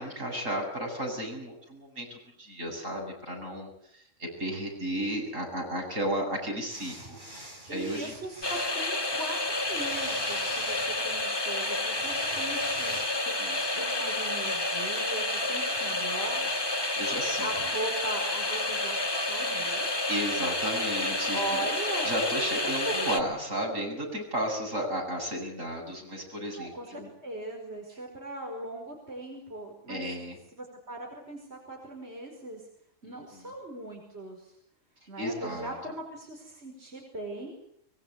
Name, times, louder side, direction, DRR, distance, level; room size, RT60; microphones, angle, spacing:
voice 1, 0.0-8.1 13.4-13.8 15.7-15.9 16.9-17.5 20.1-21.7 22.0-27.1 29.9-30.4 33.0-33.5 35.2-35.7, right 1 dB, 80° right, 1 dB, 8.5 m, -34 dB
sound 1, 6.7-8.7 9.5-11.2 11.9-13.1, equal, 40° right, 7.7 m, -45 dB
voice 2, 7.7-13.0 13.2-13.3 13.8-16.4 17.4-19.0 19.3-19.9 21.3-22.1 22.8-23.0 26.6-30.1 30.5-32.6 33.0-34.5 35.1-37.6, right 1 dB, 55° right, 1 dB, 5.4 m, -39 dB
sound 2, 8.4-23.2, left 2 dB, 20° left, 1.6 m, -30 dB
24.5 x 23.0 x 8.1 m, 0.68 s
omnidirectional pair, 1.3 m